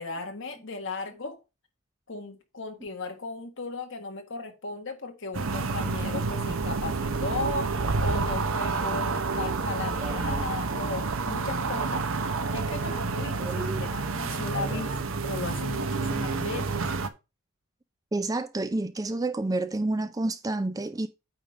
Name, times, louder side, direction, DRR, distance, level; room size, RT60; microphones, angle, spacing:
voice 1, 0.0-1.4 2.1-12.1 12.5-15.0 15.2-16.9, left 3 dB, 55° left, 1.4 m, -36 dB
sound 1, 5.3-17.1, right 4 dB, 65° right, 0.8 m, -29 dB
voice 2, 10.0-10.5 13.4-13.8 14.5-14.8 18.1-21.1, right 2 dB, 15° right, 0.4 m, -30 dB
8.7 x 3.6 x 5.1 m
head